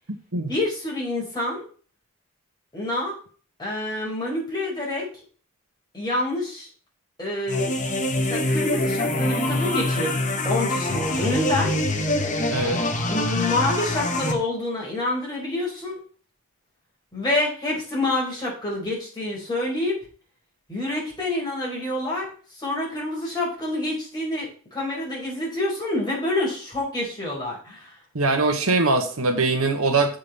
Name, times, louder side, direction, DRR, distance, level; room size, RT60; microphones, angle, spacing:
voice 1, 0.4-1.6 2.7-3.2 3.6-5.1 5.9-6.7 7.2-7.7 8.1-10.1 10.4-11.7 13.1-16.0 17.1-19.9 20.7-27.9, left 2 dB, 20° left, -5 dB, 4.9 m, -27 dB
sound 1, 7.5-14.3, left 1 dB, 35° left, 1.3 m, -25 dB
voice 2, 12.5-12.8 28.1-30.2, right 3 dB, 70° right, 5 dB, 1.4 m, -22 dB
7.3 x 5.4 x 6.7 m, 0.41 s
head